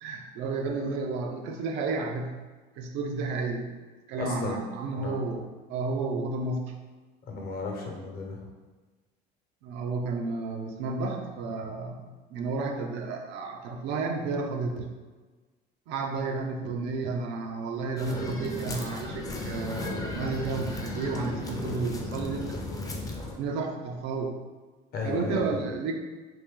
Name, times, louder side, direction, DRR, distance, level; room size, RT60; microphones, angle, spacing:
voice 1, 0.0-2.4 2.8-3.7 4.1-6.7 9.6-14.9 15.9-22.6 23.4-24.3 25.0-25.9, right 3 dB, 80° right, 3 dB, 0.6 m, -32 dB
voice 2, 4.2-4.6 4.9-5.2 7.3-8.5 24.9-25.6, left 3 dB, 55° left, 0 dB, 0.9 m, -34 dB
sound 1, 18.0-23.4, left 2 dB, 20° left, 0.5 m, -35 dB
2.9 x 2.7 x 3.7 m, 1.3 s
cardioid pair, 110°, 18 cm